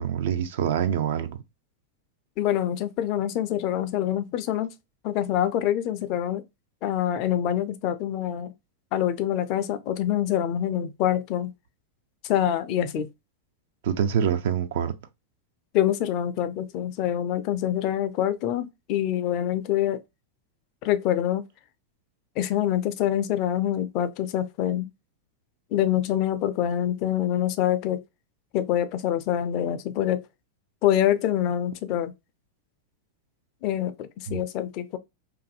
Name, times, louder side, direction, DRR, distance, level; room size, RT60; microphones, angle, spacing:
voice 1, 0.0-1.4 13.8-14.9 34.3-34.4, right 8 dB, 55° right, 0.3 m, -25 dB
voice 2, 2.4-4.7 5.0-6.4 6.8-8.5 8.9-11.5 12.2-13.1 15.7-20.0 20.8-21.4 22.4-24.9 25.7-28.0 28.5-30.2 30.8-32.1 33.6-35.0, left 11 dB, 40° left, 0.3 m, -25 dB
2.5 x 2.4 x 2.3 m
figure-of-eight pair, 90°, 0 cm